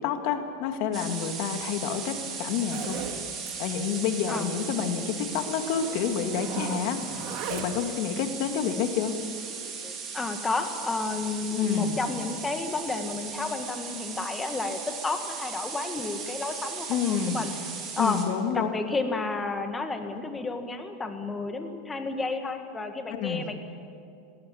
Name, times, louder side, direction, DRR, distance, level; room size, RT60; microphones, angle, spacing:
voice 1, 0.0-3.0 3.6-9.2 11.5-12.0 16.9-17.4 18.0-18.7 23.1-23.5, left 7 dB, 60° left, 6 dB, 2.1 m, -29 dB
sound 1, 0.9-18.3, right 6 dB, 30° right, 4.1 m, -37 dB
Zipper (clothing), 2.7-3.2 3.5-3.7 4.0-4.1 4.4-4.5 5.3-5.4 5.7-8.0, right 7 dB, 50° right, 2.3 m, -37 dB
voice 2, 9.6-17.5 18.0-18.2 18.5-23.6, left 3 dB, 15° left, 6 dB, 1.9 m, -31 dB
20.0 x 17.0 x 8.6 m, 2.4 s
supercardioid pair, 135°, 0 cm